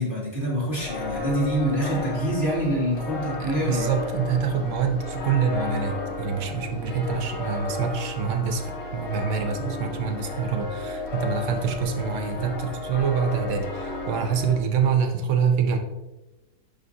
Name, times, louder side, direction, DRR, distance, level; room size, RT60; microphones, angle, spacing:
voice 1, 0.0-3.9, right 1 dB, 30° left, -6 dB, 2.4 m, -26 dB
sound 1, 0.8-14.6, left 2 dB, 80° left, 2.5 m, -33 dB
voice 2, 3.4-15.8, right 6 dB, 60° right, 6 dB, 0.9 m, -26 dB
10.5 x 3.6 x 2.8 m, 1.1 s
omnidirectional pair, 1.8 m